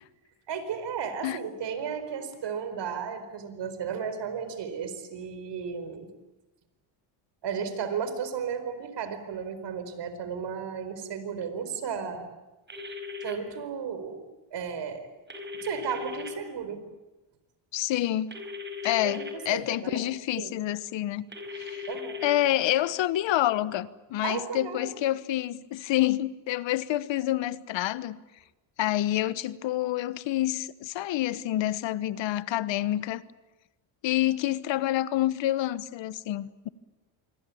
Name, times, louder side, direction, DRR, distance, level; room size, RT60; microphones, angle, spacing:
voice 1, 0.5-6.1 7.4-12.2 13.2-14.2 14.5-15.1 15.5-16.8 18.9-20.0 20.4-20.5 21.9-22.2 24.2-24.9, right 7 dB, 55° right, 4.7 m, -34 dB
sound 1, 12.7-13.3 15.3-16.3 18.3-19.3 21.3-22.3, left 5 dB, 20° right, 5.4 m, -38 dB
voice 2, 17.7-18.3 18.8-21.9 22.2-28.2 28.8-33.2 34.0-36.7, left 14 dB, 60° left, 1.2 m, -28 dB
27.0 x 22.0 x 8.6 m
cardioid pair, 105°, 50 cm